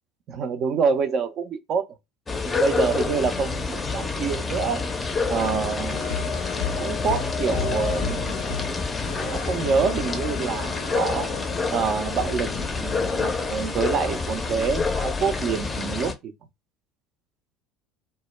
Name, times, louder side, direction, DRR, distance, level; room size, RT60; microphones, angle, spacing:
voice 1, 0.3-1.9 2.6-4.8 5.3-6.0 6.8-8.4 9.2-11.3 11.7-12.5 12.8-16.3, right 5 dB, 45° right, 0.4 m, -26 dB
sound 1, 2.3-16.1, left 4 dB, 20° left, 0.5 m, -27 dB
sound 2, 5.9-14.1, left 6 dB, 80° left, 0.4 m, -37 dB
2.2 x 2.1 x 2.9 m
figure-of-eight pair, 65°, 0 cm